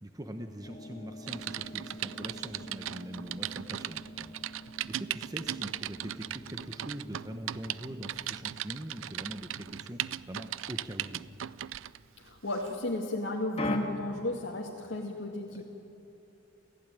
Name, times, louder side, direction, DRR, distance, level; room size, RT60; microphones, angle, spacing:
voice 1, 0.0-11.3 15.4-15.6, right 1 dB, 20° right, 5 dB, 1.0 m, -43 dB
sound 1, 0.6-12.1 13.6-13.8, left 1 dB, 30° left, 1.8 m, -44 dB
Typing, 1.3-12.0 12.5-12.7, right 12 dB, 85° right, 0.5 m, -38 dB
voice 2, 12.2-15.6, left 2 dB, 70° left, -3 dB, 2.2 m, -34 dB
28.5 x 16.0 x 9.2 m, 3.0 s
head